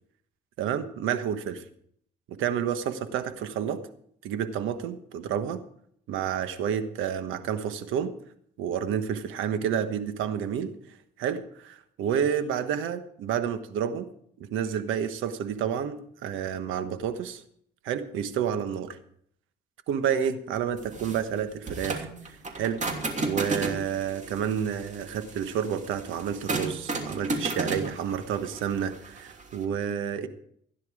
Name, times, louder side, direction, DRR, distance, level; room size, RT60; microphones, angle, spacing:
voice 1, 0.6-1.6 2.4-3.8 4.2-5.6 6.1-8.1 8.6-10.7 11.2-14.1 14.4-17.4 17.8-19.0 19.9-22.1 22.6-22.8 23.3-30.3, right 8 dB, 90° right, 10 dB, 1.3 m, -29 dB
sound 1, 20.8-29.6, right 2 dB, 35° right, 2.8 m, -33 dB
16.0 x 10.0 x 4.9 m, 0.66 s
cardioid pair, 90°, 20 cm